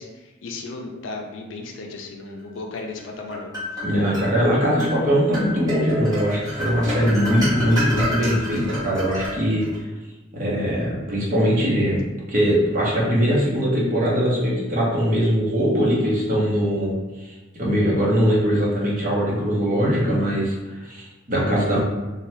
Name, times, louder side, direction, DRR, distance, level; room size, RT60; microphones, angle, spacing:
voice 1, 0.0-3.5, left 3 dB, 70° left, 2 dB, 0.4 m, -35 dB
sound 1, 3.0-4.3 4.8-5.0 5.3-9.8, equal, 20° right, 1.2 m, -29 dB
voice 2, 3.8-9.6 10.3-16.9 17.2-17.3 17.6-20.5 20.8-21.8, equal, 45° right, -5 dB, 0.8 m, -21 dB
2.7 x 2.3 x 3.1 m, 1.2 s
head